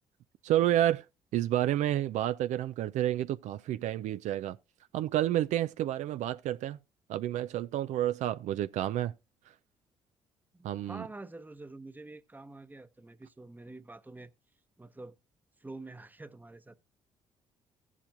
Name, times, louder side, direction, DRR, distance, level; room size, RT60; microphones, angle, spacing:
voice 1, 0.4-1.1 1.3-4.6 4.9-6.8 7.1-9.1 10.6-11.0, right 12 dB, 65° right, 0.4 m, -30 dB
voice 2, 10.5-14.3 14.8-15.2 15.6-16.8, right 2 dB, 15° right, 0.9 m, -47 dB
16.0 x 7.3 x 2.5 m
hypercardioid pair, 55°, 13 cm